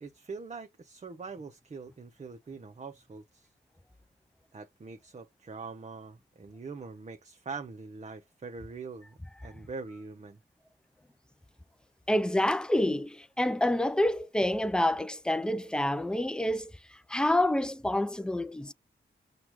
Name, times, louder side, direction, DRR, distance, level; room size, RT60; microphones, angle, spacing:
voice 1, 0.0-3.5 4.5-10.4, right 4 dB, 35° right, 0.6 m, -43 dB
voice 2, 12.1-16.7 17.1-18.7, left 1 dB, 5° left, 0.3 m, -27 dB
5.9 x 2.3 x 3.0 m
cardioid pair, 65°, 20 cm